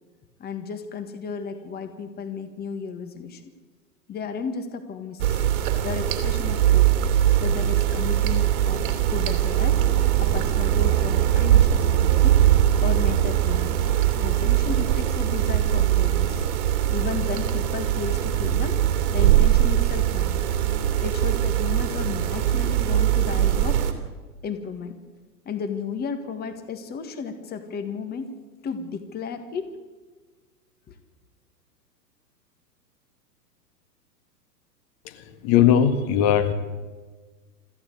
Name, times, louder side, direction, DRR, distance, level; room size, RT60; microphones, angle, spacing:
voice 1, 0.4-3.5 4.1-5.4 5.8-6.9 7.4-9.9 10.2-12.4 12.8-13.9 14.2-16.4 16.9-18.8 19.1-20.5 21.0-23.8 24.4-24.9 25.5-28.3 28.6-29.8 30.9-31.0, left 6 dB, 20° left, 8 dB, 1.8 m, -33 dB
sound 1, 5.2-23.9, right 11 dB, 45° right, 2.9 m, -21 dB
voice 2, 35.1-36.5, left 9 dB, 40° left, 8 dB, 1.8 m, -20 dB
26.0 x 14.5 x 8.3 m, 1.4 s
hypercardioid pair, 115°, 50 cm